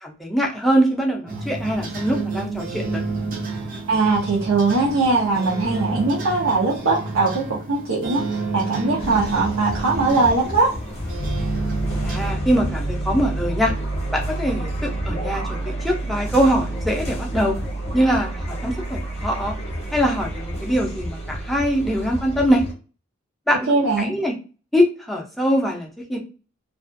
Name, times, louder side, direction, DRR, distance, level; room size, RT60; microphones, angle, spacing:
voice 1, 0.0-3.0 12.0-13.7 14.1-17.5 17.9-19.5 19.9-22.6 23.5-23.6 24.0-24.3 24.7-26.2, equal, ahead, -1 dB, 0.5 m, -22 dB
sound 1, 1.3-12.3, right 3 dB, 45° right, 0.5 m, -30 dB
voice 2, 3.9-10.8 23.7-24.1, right 3 dB, 80° right, -5 dB, 0.7 m, -20 dB
sound 2, 9.0-22.7, left 1 dB, 30° left, 0.8 m, -33 dB
Piano, 11.2-22.5, right 2 dB, 50° left, 0.5 m, -30 dB
2.5 x 2.3 x 2.4 m, 0.35 s
head